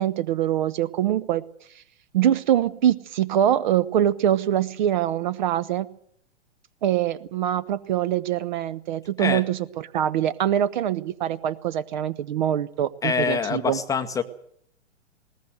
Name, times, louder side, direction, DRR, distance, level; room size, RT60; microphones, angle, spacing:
voice 1, 0.0-1.4 2.1-5.9 6.8-13.8, right 11 dB, 40° right, 18 dB, 0.8 m, -24 dB
voice 2, 13.0-14.2, left 6 dB, 10° left, 9 dB, 0.8 m, -25 dB
20.0 x 18.5 x 7.8 m, 0.68 s
figure-of-eight pair, 110°, 36 cm